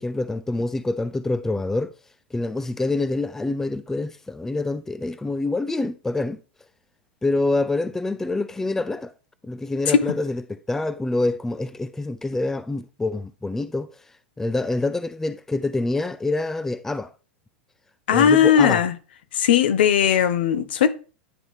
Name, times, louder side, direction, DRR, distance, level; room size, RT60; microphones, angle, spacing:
voice 1, 0.0-1.9 2.3-6.4 7.2-9.1 9.4-14.0 14.4-17.1 18.1-18.8, left 2 dB, 5° left, 0.4 m, -26 dB
voice 2, 18.1-18.9 19.3-20.9, left 8 dB, 65° left, 0.8 m, -18 dB
10.0 x 3.9 x 3.1 m
figure-of-eight pair, 95°, 6 cm